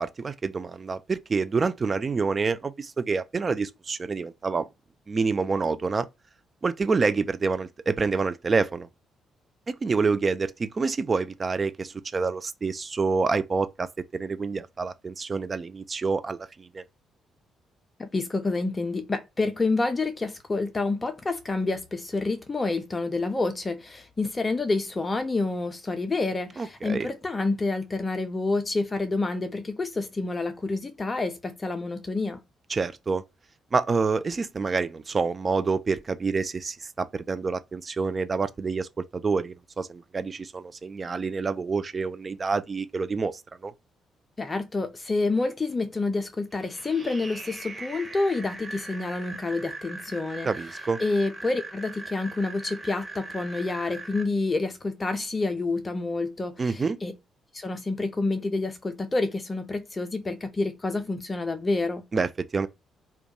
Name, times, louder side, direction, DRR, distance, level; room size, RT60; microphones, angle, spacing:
voice 1, 0.0-4.7 5.1-6.1 6.6-8.9 9.7-13.9 14.1-16.8 26.6-27.1 32.7-33.2 33.7-43.7 50.4-51.0 56.6-57.0 62.1-62.7, right 4 dB, 35° right, 0.3 m, -27 dB
voice 2, 18.0-32.4 44.4-50.5 51.0-57.1 57.5-62.0, left 3 dB, 25° left, 0.5 m, -28 dB
sound 1, 46.5-54.2, right 2 dB, 15° right, 0.9 m, -40 dB
2.2 x 2.2 x 2.7 m
figure-of-eight pair, 40°, 0 cm